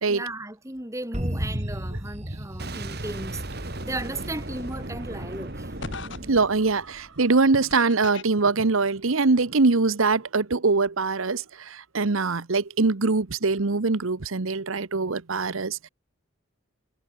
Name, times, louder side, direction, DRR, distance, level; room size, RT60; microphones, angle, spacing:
voice 1, 0.1-5.7, right 2 dB, 15° right, 2.6 m, -36 dB
sound 1, 1.1-3.9, equal, 30° right, 3.9 m, -32 dB
Boom, 2.6-7.5, right 1 dB, 50° right, 2.3 m, -36 dB
sound 2, 4.6-4.7 5.8-6.2 7.7-8.2, left 4 dB, 60° left, 1.4 m, -36 dB
voice 2, 6.3-15.9, right 3 dB, 75° right, 1.0 m, -23 dB
head